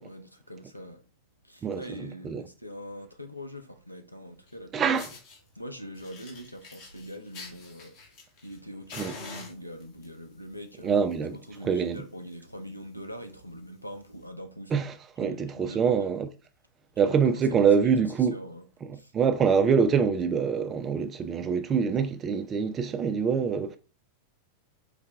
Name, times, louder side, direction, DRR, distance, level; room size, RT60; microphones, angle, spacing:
voice 1, 0.0-1.0 1.4-5.0 5.6-8.0 8.4-10.9 11.3-14.9 15.2-16.1 17.0-17.9 18.3-18.6 18.9-19.1, equal, 90° left, 0.5 m, -43 dB
voice 2, 1.6-2.4 4.7-5.1 9.0-9.1 10.8-11.4 11.6-12.0 14.7-16.3 17.0-18.4 19.1-23.8, right 6 dB, 25° right, 0.4 m, -25 dB
Fire, 4.5-4.6 4.9-5.4 5.9-8.6 8.9-10.1 10.9-11.1 11.4-11.5 11.9-12.0 12.3-12.5 13.1-13.2 14.1-14.2, left 4 dB, 45° left, 1.1 m, -45 dB
4.7 x 2.2 x 3.4 m
figure-of-eight pair, 90°, 0 cm